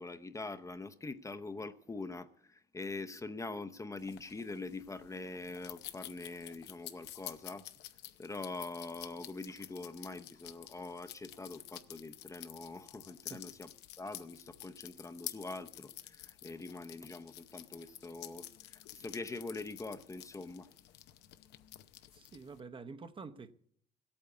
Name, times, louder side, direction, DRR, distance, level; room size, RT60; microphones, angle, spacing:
voice 1, 0.0-7.7 8.2-13.7 14.0-20.7, left 3 dB, 20° left, 0.7 m, -44 dB
sound 1, 4.0-22.6, left 14 dB, 90° left, 0.8 m, -51 dB
voice 2, 22.1-23.5, right 4 dB, 30° right, 0.8 m, -48 dB
16.5 x 8.7 x 8.2 m
cardioid pair, 110°, 17 cm